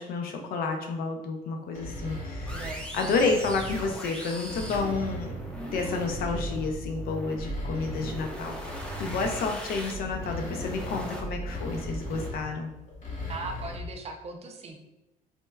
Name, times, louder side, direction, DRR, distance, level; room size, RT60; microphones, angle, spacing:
voice 1, 0.0-2.7 2.9-5.4 5.7-8.6 9.0-12.7, left 4 dB, 60° left, 3 dB, 0.5 m, -30 dB
sound 1, 1.7-3.9 4.3-6.8 7.2-14.0, left 1 dB, 45° left, 1.2 m, -39 dB
sound 2, 2.5-12.3, right 1 dB, 5° left, 0.6 m, -38 dB
voice 2, 2.5-3.2 13.3-14.8, right 3 dB, 40° right, 3 dB, 0.4 m, -39 dB
4.3 x 2.1 x 2.2 m, 0.93 s
cardioid pair, 110°, 17 cm